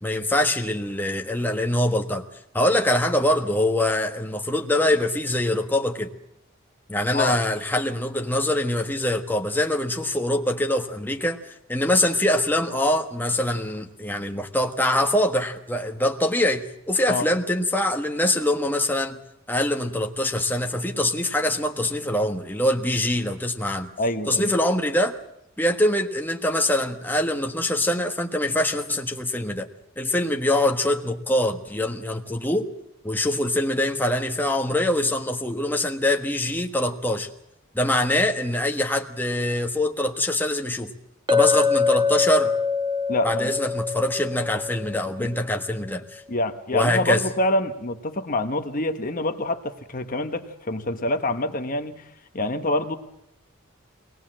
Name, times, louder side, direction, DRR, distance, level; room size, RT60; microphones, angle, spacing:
voice 1, 0.0-2.2 2.5-6.1 6.9-19.2 19.5-23.9 24.3-25.1 25.6-29.7 30.0-32.7 33.0-37.3 37.7-40.9 41.3-42.6 43.2-46.2 46.7-47.2, left 1 dB, 10° left, 1.4 m, -24 dB
voice 2, 24.0-24.5 43.1-43.5 45.2-45.3 46.3-52.0 52.3-53.0, left 1 dB, 40° left, 1.2 m, -26 dB
Chink clink, 41.3-45.5, left 5 dB, 20° right, 1.7 m, -24 dB
23.0 x 19.0 x 7.6 m
head